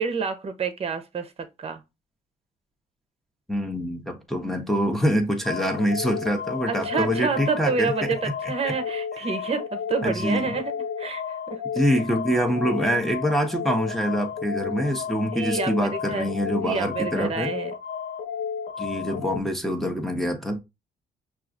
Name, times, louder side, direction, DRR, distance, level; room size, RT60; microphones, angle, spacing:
voice 1, 0.0-1.3 1.6-1.8 6.7-11.6 15.1-16.3 16.6-17.7, right 5 dB, 35° right, 0.8 m, -28 dB
voice 2, 3.5-7.9 8.7-8.8 10.0-10.5 11.7-17.5 18.8-20.6, equal, ahead, 0.8 m, -25 dB
sound 1, 5.4-19.4, left 7 dB, 85° left, 0.8 m, -32 dB
5.6 x 2.5 x 2.5 m
cardioid pair, 85°, 17 cm